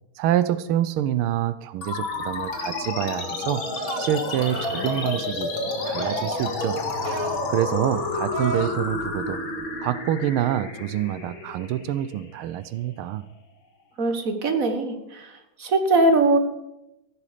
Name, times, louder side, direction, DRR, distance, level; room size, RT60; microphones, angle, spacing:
voice 1, 0.2-3.6 4.0-5.5 5.8-6.8 7.2-9.4 9.8-13.2, right 12 dB, 90° right, 14 dB, 1.5 m, -26 dB
sound 1, 1.8-12.8, left 3 dB, 70° left, 2.7 m, -30 dB
sound 2, 3.6-4.1 4.5-5.3 6.0-6.5 6.9-7.4 8.3-8.8, right 6 dB, 65° right, 1.3 m, -34 dB
voice 2, 14.0-15.3 15.6-16.4, right 2 dB, 45° right, 6 dB, 1.6 m, -21 dB
15.0 x 11.5 x 5.0 m, 0.90 s
omnidirectional pair, 2.3 m